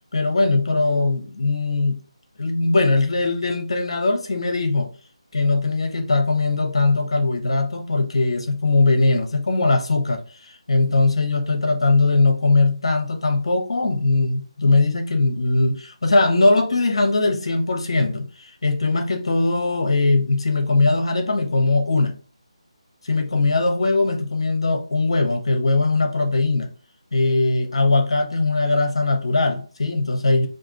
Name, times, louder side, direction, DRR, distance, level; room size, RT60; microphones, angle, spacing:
voice 1, 0.1-2.0 2.4-4.9 5.3-22.2 23.0-26.7 27.1-30.5, left 3 dB, 55° left, 1.0 m, -20 dB
3.6 x 2.7 x 3.7 m
figure-of-eight pair, 155°, 3 cm